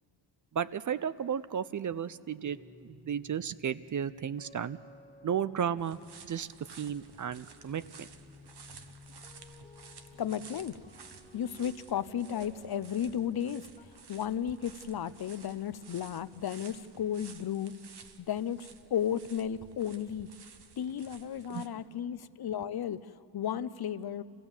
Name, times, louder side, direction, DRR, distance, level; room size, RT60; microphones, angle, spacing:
voice 1, 0.5-4.8 5.2-6.0 6.2-6.5 6.8-8.1 21.5-21.7, right 8 dB, 45° right, 15 dB, 0.4 m, -34 dB
sound 1, 2.4-13.9, left 2 dB, 20° left, 1.5 m, -56 dB
sound 2, 5.8-21.7, right 5 dB, 65° right, 1.1 m, -54 dB
voice 2, 10.2-10.8 11.3-17.8 18.2-20.3 20.8-24.2, left 9 dB, 60° left, 14 dB, 0.6 m, -34 dB
28.0 x 16.0 x 7.2 m, 2.4 s
wide cardioid pair, 150°, 42 cm